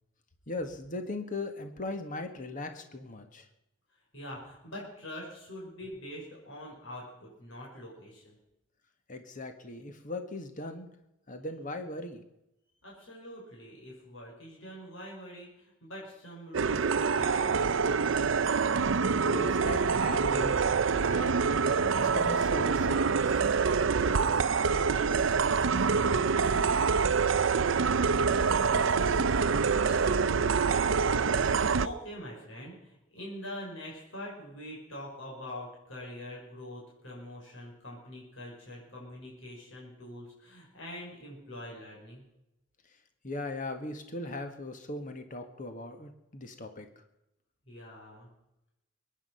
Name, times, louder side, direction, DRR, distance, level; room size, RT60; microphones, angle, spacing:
voice 1, 0.5-3.5 9.1-10.9 11.3-12.2 19.3-21.3 22.0-23.4 28.7-30.1 43.2-46.9, left 2 dB, 45° left, 7 dB, 1.7 m, -39 dB
voice 2, 4.1-8.4 12.8-18.6 23.9-27.4 31.5-42.2 47.7-48.3, equal, 80° left, -3 dB, 6.0 m, -44 dB
sound 1, 16.5-31.9, right 5 dB, 80° right, 0.6 m, -26 dB
22.5 x 10.0 x 5.7 m, 0.89 s
head